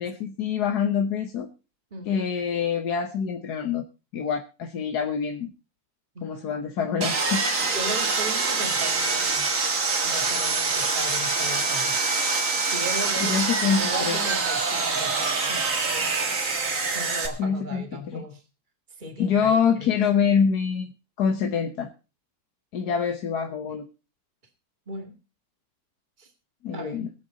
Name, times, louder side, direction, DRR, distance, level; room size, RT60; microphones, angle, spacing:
voice 1, 0.0-1.5 2.1-3.8 4.1-5.5 6.2-7.4 13.2-14.2 17.4-18.3 19.2-20.9 21.2-21.9 22.7-23.9 26.6-27.1, left 6 dB, 90° left, 5 dB, 1.7 m, -25 dB
Sawing, 7.0-17.3, right 4 dB, 55° right, 2.1 m, -25 dB
voice 2, 7.7-9.5 10.0-12.0 12.6-15.1 15.5-15.7 16.9-18.4 19.0-19.9 24.9-25.1 26.2-26.3 26.7-27.1, right 1 dB, 30° right, 4 dB, 2.4 m, -36 dB
22.0 x 8.0 x 4.0 m, 0.31 s
omnidirectional pair, 1.7 m